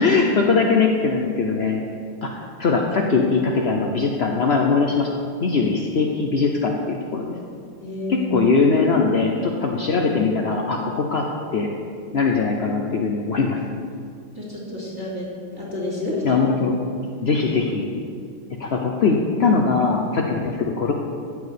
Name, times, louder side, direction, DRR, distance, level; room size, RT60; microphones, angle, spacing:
voice 1, 0.0-1.8 2.2-2.3 2.6-5.1 5.4-7.3 8.1-11.3 11.5-11.7 12.1-13.6 16.2-16.7 17.2-17.9 18.6-20.9, left 4 dB, 65° left, 1 dB, 0.6 m, -21 dB
voice 2, 7.8-8.5 14.3-16.4, left 1 dB, 10° right, -7 dB, 3.1 m, -29 dB
14.0 x 4.8 x 8.3 m, 2.3 s
omnidirectional pair, 2.2 m